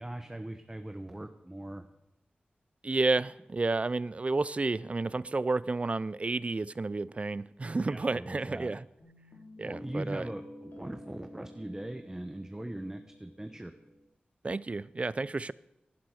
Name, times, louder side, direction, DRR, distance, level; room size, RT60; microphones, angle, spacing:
voice 1, 0.0-1.8 7.9-8.7 9.6-13.7, right 1 dB, 15° right, 0.9 m, -40 dB
voice 2, 2.8-8.9 9.6-10.3 14.4-15.5, right 3 dB, 40° right, 0.4 m, -31 dB
Guitar, 9.0-14.1, left 1 dB, 80° left, 2.9 m, -49 dB
17.5 x 11.5 x 4.8 m
wide cardioid pair, 80°, 3 cm